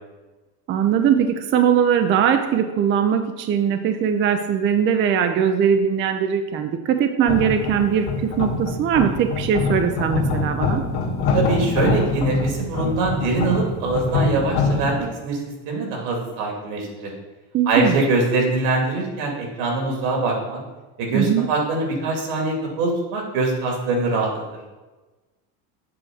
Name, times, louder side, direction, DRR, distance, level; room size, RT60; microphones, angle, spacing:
voice 1, 0.7-10.8 17.5-18.0 21.1-21.5, right 8 dB, 25° right, 7 dB, 0.4 m, -20 dB
sound 1, 7.3-14.9, left 3 dB, 55° left, 1.8 m, -24 dB
voice 2, 11.3-15.4 15.7-17.1 17.7-20.6 21.0-24.3, right 3 dB, 80° right, 0 dB, 2.6 m, -23 dB
7.7 x 3.6 x 6.4 m, 1.2 s
supercardioid pair, 130°, 46 cm